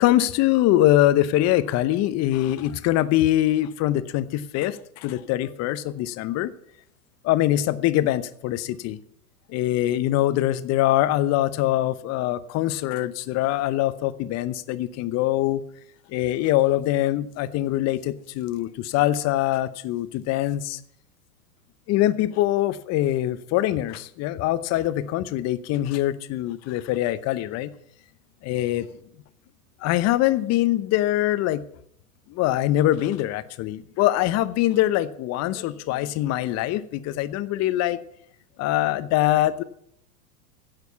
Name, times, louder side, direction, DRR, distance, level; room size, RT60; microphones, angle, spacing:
voice 1, 0.0-6.5 7.2-9.0 9.5-15.6 16.1-20.8 21.9-27.7 28.4-28.9 29.8-31.6 32.3-38.0 38.6-39.6, left 14 dB, 35° left, 15 dB, 0.8 m, -23 dB
10.5 x 7.8 x 8.3 m, 0.69 s
hypercardioid pair, 110°, 47 cm